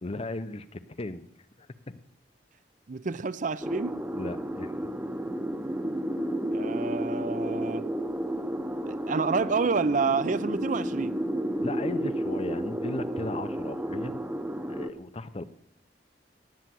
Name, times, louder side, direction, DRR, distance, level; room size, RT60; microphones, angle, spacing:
voice 1, 0.0-1.3 1.6-2.0 4.1-4.9 11.6-14.2 14.7-15.4, left 2 dB, 35° left, 13 dB, 0.7 m, -36 dB
voice 2, 2.9-4.0 6.5-7.9 8.9-11.1, right 4 dB, 45° right, 16 dB, 0.6 m, -28 dB
sound 1, 3.6-14.9, right 1 dB, 10° right, 0.8 m, -32 dB
18.0 x 9.0 x 7.6 m, 0.72 s
head